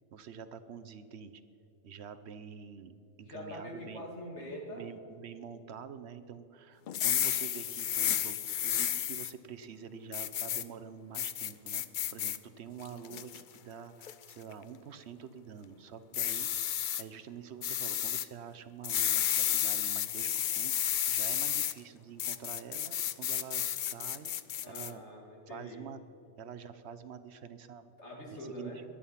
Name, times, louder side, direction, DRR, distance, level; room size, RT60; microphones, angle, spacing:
voice 1, 0.1-1.4 1.8-4.1 4.4-11.8 12.1-20.7 21.1-24.3 24.7-25.0 25.5-26.0 26.4-27.9 28.4-28.8, right 7 dB, 70° right, 12 dB, 1.0 m, -47 dB
voice 2, 3.3-4.8 24.6-25.8 28.0-28.8, equal, 80° left, 0 dB, 2.7 m, -44 dB
sound 1, 6.9-9.3 10.1-10.6 11.1-12.4 12.8-13.4 14.0-14.3 16.1-17.0 17.6-18.3 18.8-21.7 22.2-24.9, left 10 dB, 60° left, 0.6 m, -32 dB
19.0 x 11.5 x 5.7 m, 2.8 s
omnidirectional pair, 1.2 m